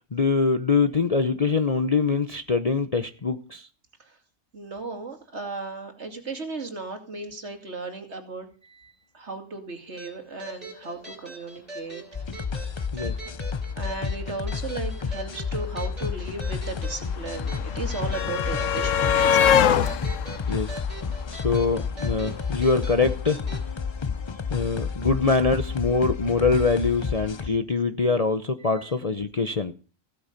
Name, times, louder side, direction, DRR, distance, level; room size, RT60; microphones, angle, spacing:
voice 1, 0.1-3.7 12.9-13.2 20.5-20.8 21.3-23.4 24.5-29.7, left 4 dB, 35° left, 0.7 m, -24 dB
voice 2, 4.5-8.5 9.1-12.0 13.8-19.6, right 3 dB, 55° right, 2.7 m, -36 dB
sound 1, 10.0-23.7, right 2 dB, 25° right, 3.7 m, -42 dB
sound 2, 12.1-27.5, left 5 dB, 50° left, 0.3 m, -31 dB
sound 3, 15.3-15.4 15.6-21.8 23.0-23.1 23.4-23.5, left 8 dB, 70° left, 1.1 m, -25 dB
16.0 x 8.7 x 5.2 m
omnidirectional pair, 1.4 m